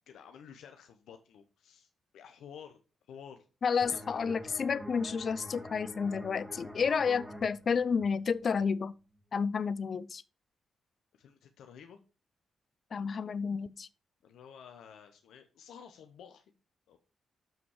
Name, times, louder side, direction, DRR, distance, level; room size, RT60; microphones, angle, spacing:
voice 1, 0.1-2.8 3.1-3.5 3.9-4.1 11.1-12.0 14.2-16.5 16.9-17.0, left 7 dB, 75° left, 0.8 m, -52 dB
voice 2, 3.6-8.9 9.3-10.2 12.9-13.9, left 6 dB, 55° left, 0.5 m, -31 dB
sound 1, 3.8-9.2, equal, 5° right, 2.2 m, -47 dB
7.3 x 5.9 x 4.9 m
hypercardioid pair, 40°, 0 cm